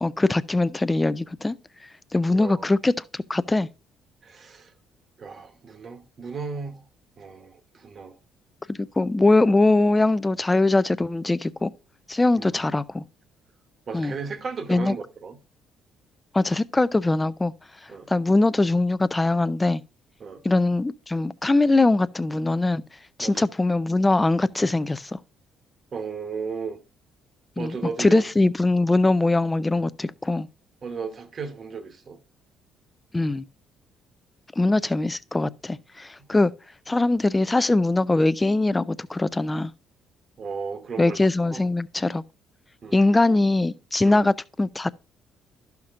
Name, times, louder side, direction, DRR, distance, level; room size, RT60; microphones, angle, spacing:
voice 1, 0.0-1.6 2.1-3.7 8.7-11.7 12.1-13.0 13.9-14.1 14.7-15.0 16.3-17.5 18.1-19.8 20.4-22.8 23.2-25.2 27.6-30.5 33.1-33.4 34.6-36.5 36.9-39.7 41.0-42.2 42.9-44.9, left 2 dB, 15° left, 0.4 m, -22 dB
voice 2, 2.3-2.7 4.2-4.7 5.2-6.8 7.2-8.2 12.4-12.6 13.9-15.4 17.9-18.1 20.2-20.4 23.2-23.5 25.9-26.8 27.6-28.3 29.7-29.9 30.8-32.2 40.4-41.2 41.5-41.6 42.8-43.4 44.0-44.2, right 5 dB, 45° right, 1.1 m, -35 dB
11.5 x 5.8 x 2.5 m
supercardioid pair, 75°, 0 cm